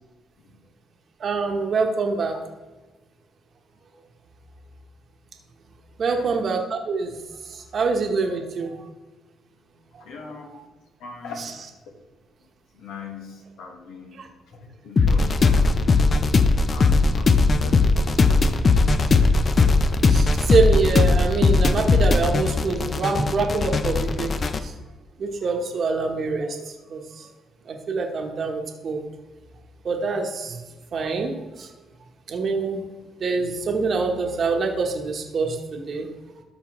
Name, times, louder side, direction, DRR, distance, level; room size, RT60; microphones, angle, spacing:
voice 1, 1.2-2.4 6.0-7.2 7.5-8.8 14.1-14.3 20.1-24.4 24.6-24.7 25.2-27.3 27.7-29.0 29.8-30.6 30.9-31.7 32.3-32.8 33.2-36.1, right 4 dB, 55° right, 2 dB, 1.1 m, -25 dB
voice 2, 6.0-6.4 10.0-10.5 11.0-11.7 12.7-16.3 16.7-18.2 18.4-18.6, left 4 dB, 90° left, 2 dB, 1.6 m, -41 dB
sound 1, 15.0-24.6, left 3 dB, 40° left, 0.6 m, -19 dB
13.0 x 5.5 x 3.1 m, 1.2 s
cardioid pair, 90°, 0 cm